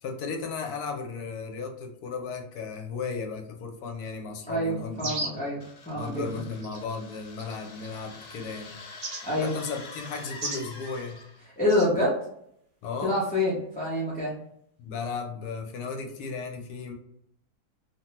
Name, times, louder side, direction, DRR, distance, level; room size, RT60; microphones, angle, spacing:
voice 1, 0.0-5.1 5.9-8.8 9.4-11.2 12.8-13.2 14.8-16.9, left 5 dB, 85° left, 3 dB, 1.1 m, -35 dB
voice 2, 4.5-6.4 9.2-9.5 11.6-12.2 13.0-14.3, left 1 dB, 10° left, -7 dB, 0.4 m, -27 dB
sound 1, 5.0-5.5 6.6-6.8 7.4-7.9 9.0-9.2 10.4-10.7 11.7-11.9, right 2 dB, 45° right, 0.7 m, -34 dB
sound 2, 5.6-11.5, left 3 dB, 60° left, 0.8 m, -45 dB
3.0 x 2.2 x 2.9 m, 0.72 s
omnidirectional pair, 1.6 m